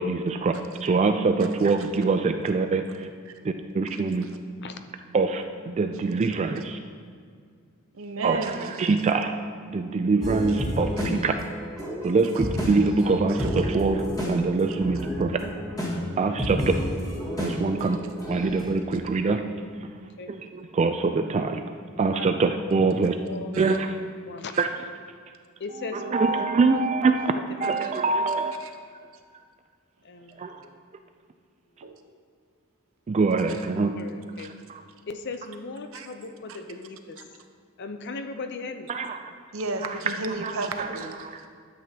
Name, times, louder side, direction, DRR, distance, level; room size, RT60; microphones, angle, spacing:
voice 1, 0.0-0.5 0.8-3.1 3.4-4.3 5.1-6.8 8.2-8.4 8.8-9.4 9.7-11.3 12.0-15.4 16.2-16.7 17.4-18.0 18.3-19.4 19.8-19.9 20.3-21.6 22.0-23.2 23.6-23.9 24.6-24.7 25.9-28.5 30.4-30.6 33.1-33.9 34.7-34.8 38.9-39.3, right 4 dB, 30° right, 7 dB, 0.3 m, -24 dB
voice 2, 3.9-4.4 6.6-6.7 7.9-8.9 10.5-10.6 11.0-11.1 12.3-12.5 13.3-13.6 17.8-18.1 18.9-19.0 23.5-23.8 24.5-24.6 28.6-28.8 29.1-29.2 31.8-32.0 33.5-33.6 34.4-34.5 35.9-36.1 36.5-36.6 37.2-37.3 39.5-41.5, right 3 dB, 70° right, 6 dB, 0.7 m, -35 dB
voice 3, 4.6-5.0 20.0-20.3 22.1-22.3 23.3-23.6 24.2-24.6 25.6-26.4 26.7-26.8 27.3-28.0 30.0-30.6 33.1-33.4 33.9-34.5 35.1-37.2 37.8-39.0, left 3 dB, 55° left, 8 dB, 0.6 m, -38 dB
sound 1, 10.2-18.7, equal, 15° left, 1.7 m, -31 dB
12.5 x 7.7 x 2.8 m, 2.1 s
head